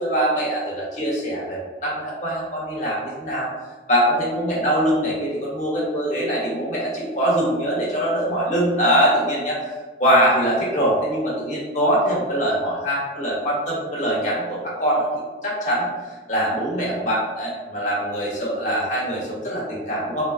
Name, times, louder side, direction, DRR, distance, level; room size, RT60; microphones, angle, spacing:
voice 1, 0.0-3.5 3.9-9.6 10.0-20.3, equal, 45° left, -5 dB, 1.0 m, -23 dB
3.3 x 2.4 x 2.3 m, 1.4 s
head